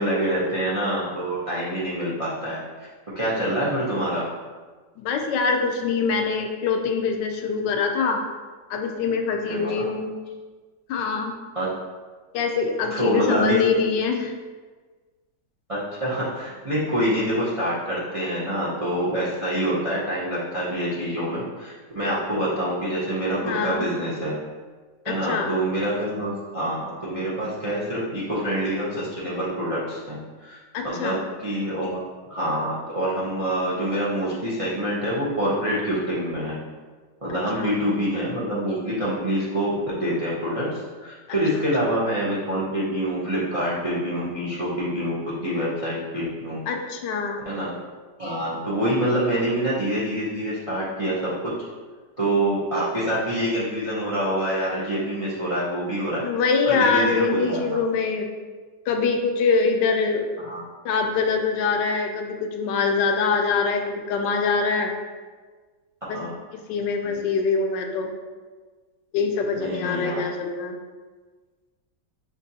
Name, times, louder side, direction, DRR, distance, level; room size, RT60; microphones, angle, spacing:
voice 1, 0.0-2.9 3.1-4.2 9.5-9.8 11.5-11.7 12.9-13.6 15.7-24.4 25.1-30.6 30.8-32.0 32.3-36.5 37.2-45.2 45.4-46.6 47.4-47.7 48.2-51.3 52.2-56.2 56.7-57.8 60.5-60.6 66.1-66.3 67.0-67.3 69.5-70.2, right 1 dB, 40° right, -8 dB, 0.4 m, -26 dB
voice 2, 5.0-8.2 8.7-10.1 10.9-11.3 12.3-14.3 23.4-23.9 25.1-25.5 30.7-31.2 37.3-37.7 41.5-41.6 46.7-47.4 56.2-58.3 58.9-60.3 60.8-64.9 66.1-66.2 66.7-68.1 69.1-70.8, left 5 dB, 80° left, 4 dB, 1.2 m, -24 dB
5.9 x 2.9 x 2.7 m, 1.4 s
omnidirectional pair, 1.9 m